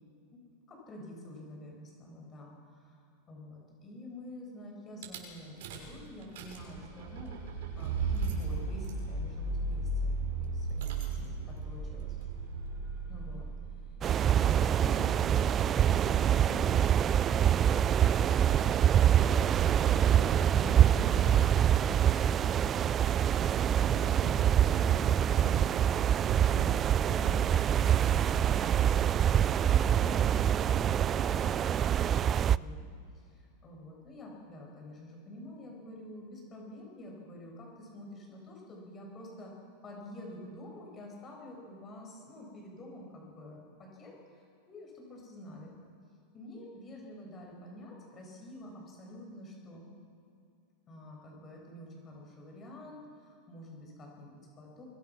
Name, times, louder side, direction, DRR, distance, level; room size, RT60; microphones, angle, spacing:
voice 1, 0.7-7.3 7.8-12.2 13.1-13.5 13.8-22.5 22.8-32.9 33.1-45.8 46.3-49.9 50.9-54.8, left 1 dB, 25° left, -1 dB, 7.6 m, -48 dB
Rattle / Car / Engine starting, 5.0-5.2 5.6-5.9 6.2-14.0, right 3 dB, 65° right, 6.1 m, -35 dB
sound 1, 14.0-32.6, right 9 dB, 25° right, 0.4 m, -25 dB
24.5 x 23.5 x 6.4 m, 2.4 s
supercardioid pair, 135°, 0 cm